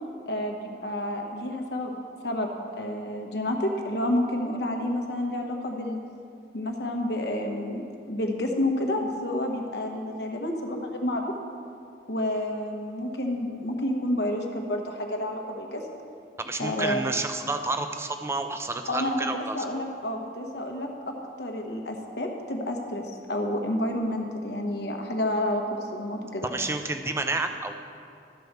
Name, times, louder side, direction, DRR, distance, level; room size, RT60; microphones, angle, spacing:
voice 1, 0.3-1.9 2.2-6.0 6.5-11.3 12.1-15.8 16.6-17.0 18.9-26.5, left 1 dB, 70° left, 2 dB, 1.1 m, -29 dB
voice 2, 16.4-19.6 26.4-27.7, right 2 dB, 15° right, 7 dB, 0.5 m, -30 dB
12.5 x 4.6 x 6.6 m, 2.4 s
head